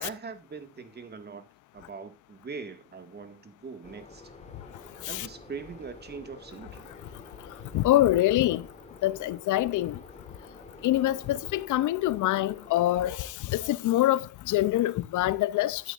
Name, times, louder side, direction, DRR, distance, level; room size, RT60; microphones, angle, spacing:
voice 1, 0.0-1.5 1.7-4.3 5.1-6.9, right 5 dB, 35° right, 2.0 m, -42 dB
sound 1, 3.8-13.0, left 2 dB, 25° left, 3.5 m, -49 dB
voice 2, 7.7-8.6 9.0-9.9 10.8-13.1 13.5-14.2 14.5-15.8, left 14 dB, 80° left, 0.7 m, -24 dB
12.5 x 9.2 x 2.5 m
cardioid pair, 90°, 30 cm